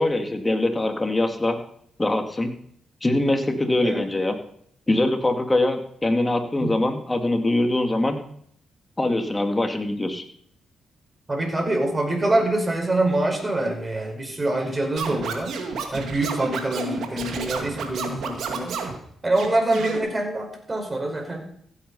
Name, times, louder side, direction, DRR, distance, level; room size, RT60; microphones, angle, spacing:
voice 1, 0.0-1.6 2.0-2.5 3.0-4.3 4.9-8.2 9.0-10.2, left 2 dB, 20° left, 5 dB, 2.6 m, -23 dB
voice 2, 11.3-15.6 15.9-18.8 19.2-21.4, right 2 dB, 30° right, 3 dB, 5.5 m, -25 dB
Scratching (performance technique), 15.0-19.0 19.3-20.0, right 5 dB, 75° right, 2.3 m, -31 dB
16.0 x 8.7 x 5.6 m, 0.66 s
supercardioid pair, 50°, 0 cm